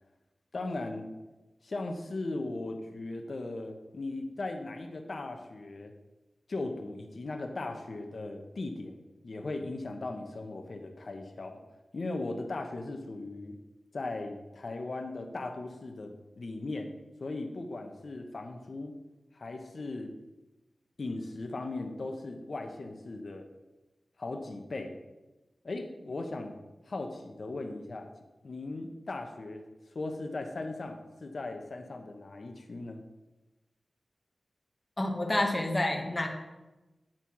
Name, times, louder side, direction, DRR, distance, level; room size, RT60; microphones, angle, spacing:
voice 1, 0.5-1.1 1.6-5.9 6.5-9.0 9.2-11.6 11.9-13.5 13.9-16.9 17.2-18.9 19.3-20.1 21.0-23.4 24.2-24.9 25.6-26.6 26.9-28.1 28.4-29.6 29.9-33.0, left 2 dB, 65° left, 4 dB, 1.0 m, -38 dB
voice 2, 35.0-36.3, left 1 dB, 30° left, 2 dB, 1.6 m, -28 dB
9.0 x 4.4 x 6.1 m, 1.1 s
cardioid pair, 45°, 0 cm